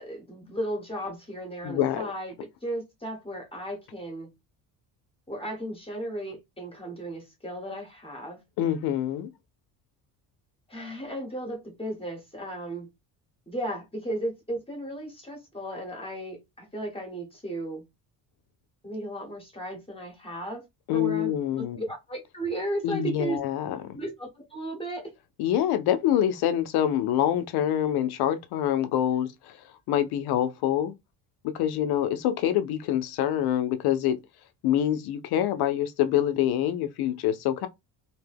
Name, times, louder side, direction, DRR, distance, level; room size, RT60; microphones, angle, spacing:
voice 1, 0.0-4.3 5.3-8.4 10.7-12.9 13.5-17.8 18.8-20.7 20.9-21.4 21.8-23.4 23.9-25.1, right 1 dB, 15° left, 1.0 m, -35 dB
voice 2, 1.6-2.1 8.6-9.3 20.9-21.8 22.8-24.0 25.4-29.6 29.9-30.9 31.4-34.2 34.6-37.7, left 11 dB, 75° left, 0.6 m, -26 dB
2.7 x 2.1 x 3.3 m
cardioid pair, 120°, 38 cm